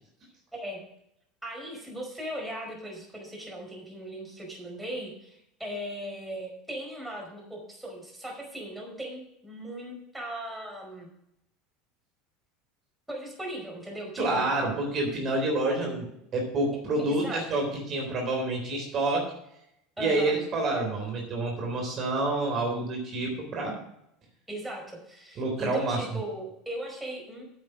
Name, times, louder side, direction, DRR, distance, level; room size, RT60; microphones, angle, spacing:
voice 1, 1.4-11.1 13.1-14.5 17.0-17.4 20.0-20.3 24.5-27.4, equal, 5° right, -1 dB, 5.0 m, -38 dB
voice 2, 14.2-19.2 20.0-23.8 25.4-26.0, right 2 dB, 45° right, 0 dB, 3.8 m, -28 dB
9.5 x 7.9 x 6.3 m, 0.77 s
hypercardioid pair, 75°, 0 cm